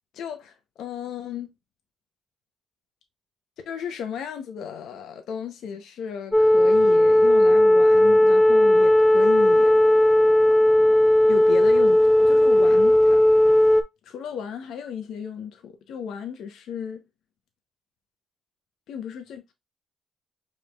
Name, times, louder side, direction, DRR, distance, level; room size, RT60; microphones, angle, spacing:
voice 1, 0.1-1.5 3.7-9.8 11.3-13.2 14.1-17.0 18.9-19.5, left 7 dB, 75° left, 0.7 m, -34 dB
sound 1, 6.3-13.8, left 1 dB, 10° left, 0.6 m, -16 dB
4.9 x 3.2 x 2.3 m
cardioid pair, 90°, 0 cm